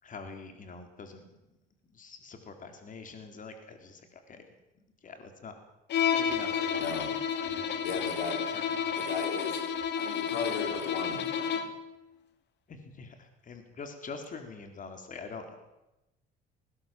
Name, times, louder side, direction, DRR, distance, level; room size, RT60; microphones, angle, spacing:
voice 1, 0.0-1.6 1.9-4.5 5.0-5.6 6.2-7.8 8.5-9.0 12.7-15.6, left 4 dB, 40° left, 6 dB, 3.9 m, -45 dB
Bowed string instrument, 5.9-11.8, left 7 dB, 60° left, 2.3 m, -31 dB
voice 2, 6.8-7.1 7.8-8.5 9.0-9.6 10.0-11.7, left 5 dB, 85° left, 4 dB, 5.0 m, -36 dB
20.0 x 19.0 x 7.7 m, 0.95 s
supercardioid pair, 80°, 20 cm